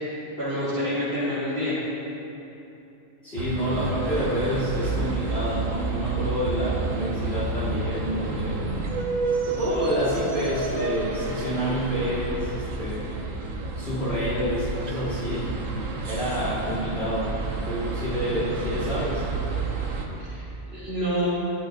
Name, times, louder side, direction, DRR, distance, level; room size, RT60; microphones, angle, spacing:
voice 1, 0.4-1.8 20.2-20.5 20.7-21.3, equal, 50° right, -13 dB, 3.2 m, -27 dB
voice 2, 3.2-8.7 9.4-13.2 13.8-15.6 16.0-17.4 17.6-19.2, equal, 55° left, -10 dB, 3.4 m, -28 dB
sound 1, 3.4-20.1, right 3 dB, 80° right, 1.5 m, -30 dB
15.0 x 12.5 x 2.7 m, 2.9 s
omnidirectional pair, 1.3 m